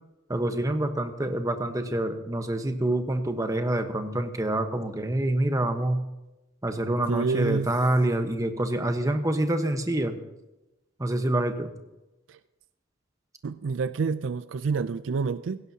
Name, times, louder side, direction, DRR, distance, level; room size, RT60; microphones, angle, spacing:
voice 1, 0.3-6.0 6.6-10.2 11.0-11.7, right 1 dB, 15° right, 6 dB, 1.1 m, -26 dB
voice 2, 7.1-7.7 12.3-12.4 13.4-15.6, right 5 dB, 70° right, 14 dB, 0.4 m, -28 dB
17.0 x 16.5 x 2.8 m, 0.99 s
head